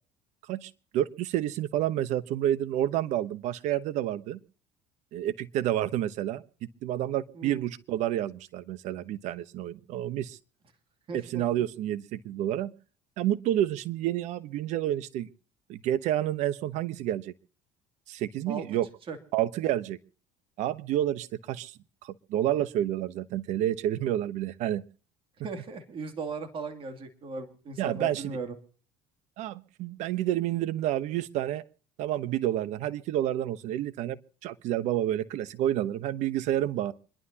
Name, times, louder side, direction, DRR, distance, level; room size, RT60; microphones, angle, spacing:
voice 1, 0.5-4.4 5.1-6.4 6.8-10.4 11.1-12.7 13.2-15.3 15.7-17.3 18.1-18.9 19.3-20.0 20.6-21.7 22.0-24.8 27.8-28.2 29.4-31.6 32.0-36.9, right 12 dB, 70° right, 15 dB, 1.0 m, -29 dB
voice 2, 11.1-11.4 18.5-18.6 19.1-19.2 25.4-28.6, right 4 dB, 45° right, 6 dB, 2.7 m, -37 dB
27.0 x 11.5 x 2.9 m, 0.41 s
supercardioid pair, 90°, 13 cm